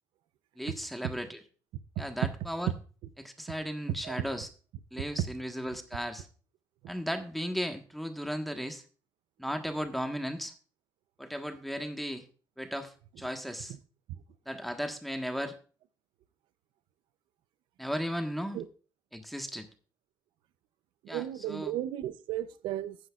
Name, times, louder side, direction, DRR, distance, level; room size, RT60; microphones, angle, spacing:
voice 1, 0.6-1.4 2.0-2.7 3.2-4.5 4.9-6.3 6.9-8.8 9.4-10.5 11.2-12.2 12.6-13.7 14.5-15.6 17.8-18.6 19.1-19.7 21.1-21.7, equal, ahead, 1.4 m, -35 dB
voice 2, 21.0-23.0, right 12 dB, 85° right, 0.6 m, -34 dB
14.0 x 9.8 x 2.4 m
cardioid pair, 75°, 8 cm